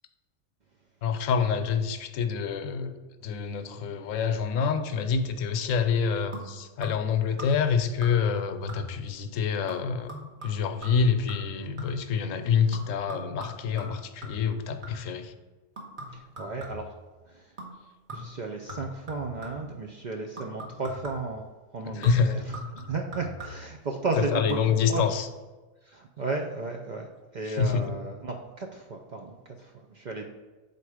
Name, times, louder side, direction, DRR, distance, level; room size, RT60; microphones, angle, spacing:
voice 1, 1.0-2.9 3.2-10.1 10.4-15.3 21.8-22.4 24.2-25.3 27.4-27.8, left 6 dB, 80° left, 9 dB, 1.0 m, -27 dB
sound 1, 6.3-7.1 7.4-7.7 8.0-8.4 8.7-9.1 9.7-12.1 12.7-15.2 15.8-17.0 17.6-17.8 18.1-19.7 20.4-21.4 22.0-23.8 24.4-24.6 24.9-25.0, equal, 40° right, 1.4 m, -42 dB
voice 2, 16.1-16.9 17.2-17.6 18.1-22.6 22.9-24.6 24.9-25.1 25.8-30.3, right 3 dB, 65° right, 2 dB, 0.4 m, -34 dB
6.7 x 4.1 x 4.8 m, 1.3 s
omnidirectional pair, 1.3 m